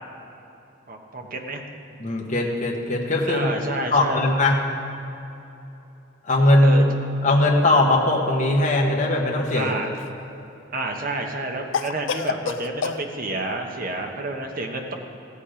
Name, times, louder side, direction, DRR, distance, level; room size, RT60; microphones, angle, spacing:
voice 1, 0.9-1.6 3.3-4.2 6.6-6.8 9.5-9.9 10.7-14.9, right 2 dB, 45° right, 2 dB, 1.1 m, -29 dB
voice 2, 2.0-3.5 3.9-4.5 6.2-6.8 7.2-9.7, left 2 dB, 40° left, -1 dB, 1.3 m, -19 dB
Cough, 9.4-10.2 11.7-13.0, left 5 dB, 70° left, 0.5 m, -29 dB
15.0 x 8.5 x 5.0 m, 2.9 s
head